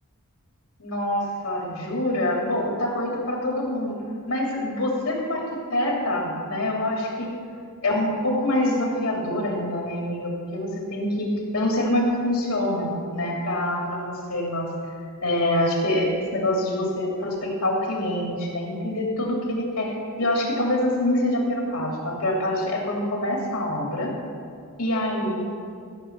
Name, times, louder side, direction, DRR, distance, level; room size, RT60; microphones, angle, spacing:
voice 1, 0.8-3.9 4.3-7.3 7.8-14.7 15.2-24.1 24.8-25.4, left 1 dB, 80° left, -1 dB, 2.8 m, -25 dB
14.5 x 6.9 x 6.1 m, 2.2 s
head